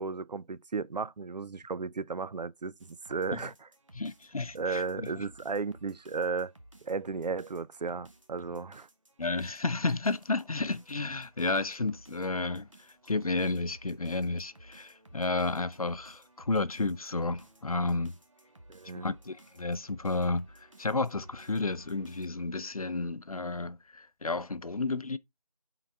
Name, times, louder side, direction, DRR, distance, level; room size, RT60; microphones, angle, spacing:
voice 1, 0.0-3.7 4.5-6.5 6.8-8.9 18.7-19.1, right 4 dB, 85° right, 0.5 m, -34 dB
sound 1, 2.8-22.3, right 1 dB, 50° right, 1.3 m, -57 dB
voice 2, 3.9-5.2 9.2-18.1 19.0-25.2, left 3 dB, 60° left, 0.6 m, -32 dB
8.6 x 4.0 x 3.4 m
figure-of-eight pair, 180°, 21 cm